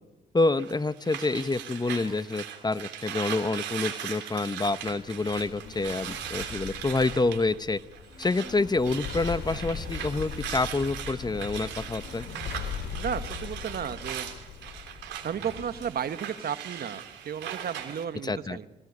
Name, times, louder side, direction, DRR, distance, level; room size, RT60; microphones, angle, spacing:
voice 1, 0.3-7.8 8.2-12.3 18.2-18.6, left 3 dB, 25° left, 15 dB, 1.0 m, -27 dB
sound 1, 0.6-8.6 8.8-18.0, right 10 dB, 80° right, 3.3 m, -39 dB
sound 2, 4.6-15.9, left 6 dB, 65° left, 4.3 m, -40 dB
voice 2, 13.0-14.3 15.2-18.7, right 8 dB, 60° right, 11 dB, 1.6 m, -33 dB
25.0 x 17.0 x 9.8 m, 1.0 s
supercardioid pair, 60°, 18 cm